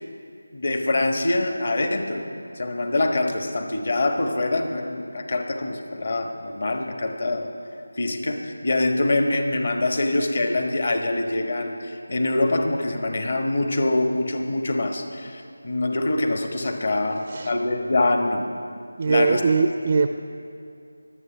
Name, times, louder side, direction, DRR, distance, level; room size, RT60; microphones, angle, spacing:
voice 1, 0.5-2.2 2.6-7.5 8.0-18.5 19.0-19.4, left 2 dB, 45° left, 5 dB, 1.3 m, -24 dB
voice 2, 19.0-20.1, right 4 dB, 30° right, 8 dB, 0.4 m, -21 dB
23.0 x 8.4 x 5.8 m, 2.4 s
figure-of-eight pair, 165°, 0 cm